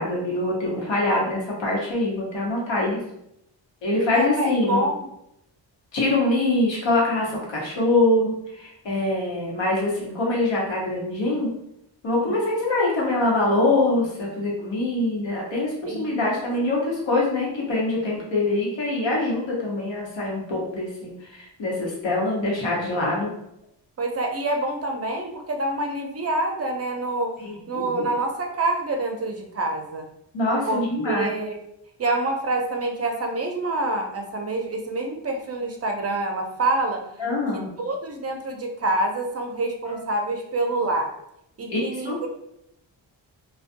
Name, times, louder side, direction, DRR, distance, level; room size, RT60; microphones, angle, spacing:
voice 1, 0.0-3.0 3.8-4.9 5.9-11.5 12.0-23.3 27.4-27.9 30.3-31.3 37.2-37.7 39.9-40.0 41.7-42.2, left 2 dB, 70° left, -3 dB, 1.0 m, -24 dB
voice 2, 4.1-5.1 12.2-12.4 15.9-16.4 24.0-27.4 27.7-30.1 30.7-31.6 32.0-37.1 37.8-41.2 41.6-42.3, right 2 dB, 35° right, 3 dB, 0.5 m, -27 dB
2.4 x 2.2 x 2.5 m, 0.80 s
cardioid pair, 70°, 46 cm